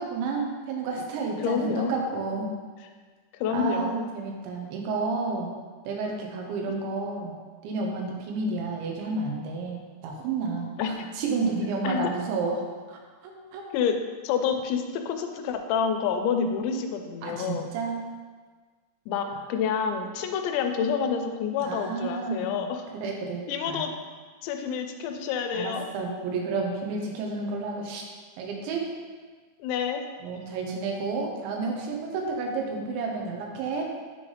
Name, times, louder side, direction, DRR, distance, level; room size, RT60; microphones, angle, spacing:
voice 1, 0.0-2.5 3.5-5.5 5.9-7.4 7.6-12.6 12.9-13.6 17.2-18.0 21.6-22.7 22.9-23.9 25.5-28.0 28.4-28.8 30.2-33.8, right 3 dB, 85° right, 0 dB, 3.3 m, -31 dB
voice 2, 1.4-1.9 3.4-4.1 10.8-11.1 11.8-12.1 13.7-13.9 14.2-17.7 19.1-22.8 23.5-23.9 24.4-25.9 29.6-30.1, left 6 dB, 85° left, 5 dB, 2.9 m, -28 dB
10.0 x 3.9 x 3.3 m, 1.5 s
omnidirectional pair, 5.2 m